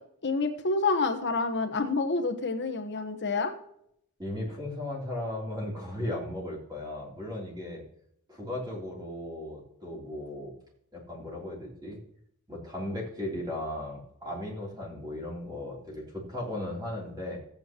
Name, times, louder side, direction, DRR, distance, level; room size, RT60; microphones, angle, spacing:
voice 1, 0.2-3.5, left 3 dB, 50° left, 6 dB, 1.2 m, -28 dB
voice 2, 4.2-7.8 8.3-10.5 10.9-12.0 12.5-17.4, left 1 dB, 20° right, -3 dB, 3.3 m, -36 dB
15.5 x 8.7 x 3.0 m, 0.71 s
head